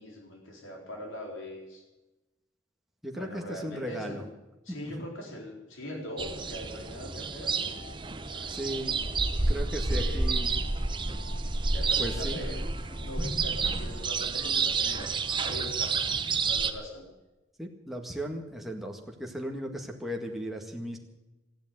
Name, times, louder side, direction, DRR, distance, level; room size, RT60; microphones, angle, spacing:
voice 1, 0.0-1.8 3.1-4.2 4.6-7.8 8.3-8.8 9.9-10.2 11.6-12.6 13.0-15.1 15.4-15.9 16.2-17.0, equal, 90° left, 0 dB, 4.2 m, -41 dB
voice 2, 3.0-4.2 4.7-4.9 8.5-9.0 9.5-10.6 12.0-12.4 17.6-21.0, equal, ahead, 0 dB, 1.7 m, -36 dB
sound 1, 6.2-16.7, right 4 dB, 25° right, 0.8 m, -30 dB
sound 2, 7.4-15.8, left 2 dB, 65° left, 7.7 m, -54 dB
14.5 x 10.5 x 9.1 m, 1.0 s
head